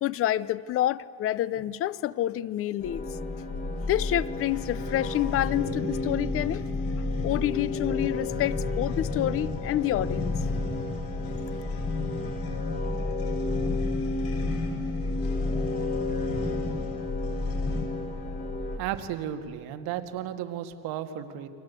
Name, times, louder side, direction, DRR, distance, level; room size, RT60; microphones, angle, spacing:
voice 1, 0.0-3.0 3.8-6.6 7.2-10.5, left 13 dB, 40° left, 19 dB, 0.6 m, -28 dB
sound 1, 2.8-18.8, left 2 dB, 20° left, 1.5 m, -31 dB
sound 2, 4.3-18.1, left 4 dB, 60° left, 5.3 m, -36 dB
voice 2, 18.8-21.5, right 10 dB, 85° right, 7 dB, 2.0 m, -34 dB
30.0 x 24.0 x 8.2 m, 2.5 s
cardioid pair, 175°, 37 cm